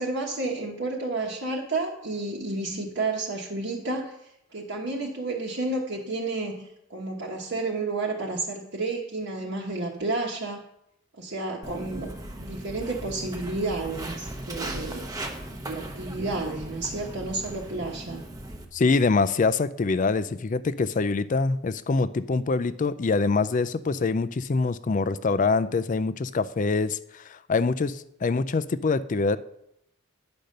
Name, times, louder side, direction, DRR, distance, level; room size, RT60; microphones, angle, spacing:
voice 1, 0.0-4.1 4.5-10.6 11.2-12.1 12.4-15.1 15.7-18.2, right 3 dB, 55° right, -2 dB, 1.1 m, -31 dB
Walk footsteps, 11.6-18.6, right 1 dB, 15° right, 0.9 m, -37 dB
voice 2, 18.7-29.4, left 4 dB, 35° left, 15 dB, 0.4 m, -25 dB
10.5 x 5.2 x 6.5 m, 0.78 s
head